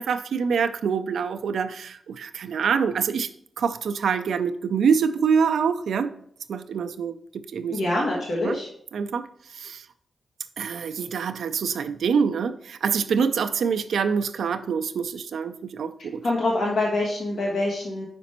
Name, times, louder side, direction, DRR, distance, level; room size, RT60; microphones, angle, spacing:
voice 1, 0.0-3.3 3.6-6.1 6.5-7.8 8.4-8.6 8.9-9.3 9.5-9.8 10.6-16.2, right 6 dB, 85° right, 0.4 m, -25 dB
voice 2, 7.7-8.7 16.2-18.1, left 2 dB, 80° left, 1.2 m, -25 dB
5.1 x 5.0 x 4.2 m
cardioid pair, 50°, 0 cm